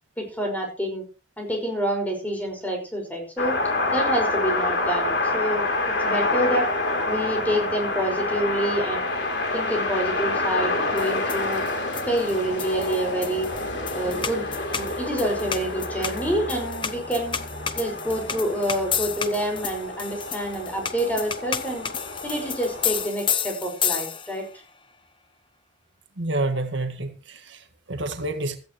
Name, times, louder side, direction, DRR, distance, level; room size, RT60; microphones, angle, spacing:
voice 1, 0.2-1.0 1.4-3.6 3.9-6.7 7.1-9.1 9.5-11.6 12.0-13.5 13.9-14.5 14.7-17.4 17.7-21.9 22.2-24.5, right 1 dB, 10° left, 2 dB, 5.5 m, -27 dB
sound 1, 3.4-23.1, left 2 dB, 60° left, 3.4 m, -28 dB
sound 2, 11.0-24.5, left 7 dB, 25° left, 0.9 m, -32 dB
voice 2, 26.2-28.6, right 2 dB, 70° right, 6 dB, 1.7 m, -29 dB
16.5 x 14.0 x 3.2 m, 0.34 s
head